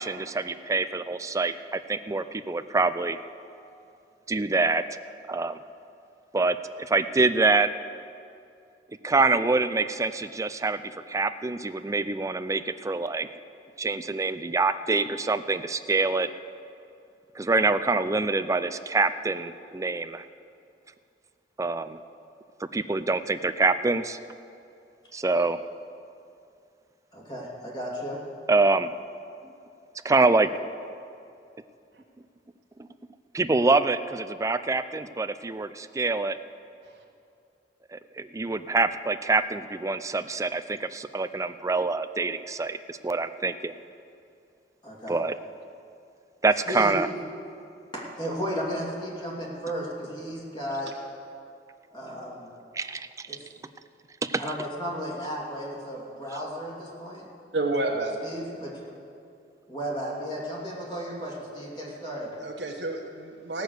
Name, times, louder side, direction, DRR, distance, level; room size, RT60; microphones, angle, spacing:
voice 1, 0.0-3.2 4.3-5.0 5.3-5.6 6.3-7.7 9.0-13.3 13.8-16.3 17.4-20.3 21.6-22.0 22.7-24.2 25.1-25.6 28.5-28.9 30.0-30.5 33.3-36.4 37.9-43.7 45.1-45.4 46.4-47.1 52.7-53.3 54.2-54.5, right 3 dB, 20° right, 11 dB, 0.4 m, -25 dB
voice 2, 27.1-28.2 44.8-45.2 46.6-46.9 47.9-50.9 51.9-52.5 53.3-53.5 54.4-57.3 58.2-58.8 59.7-62.4, equal, 25° left, -4 dB, 2.7 m, -34 dB
voice 3, 57.5-58.2 62.4-63.6, right 2 dB, 80° right, 0 dB, 1.2 m, -29 dB
16.5 x 6.6 x 7.9 m, 2.5 s
head